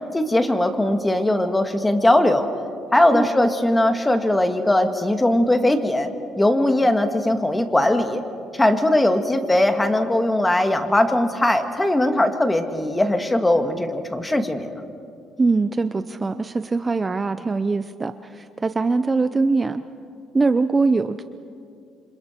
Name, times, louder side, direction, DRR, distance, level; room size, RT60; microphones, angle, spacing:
voice 1, 0.1-2.4 2.9-6.1 6.4-8.2 8.5-14.7, left 1 dB, 10° left, 7 dB, 1.8 m, -20 dB
voice 2, 15.4-19.8 20.3-21.2, right 3 dB, 25° right, 11 dB, 0.6 m, -22 dB
28.5 x 26.5 x 4.5 m, 2.5 s
cardioid pair, 105°, 0 cm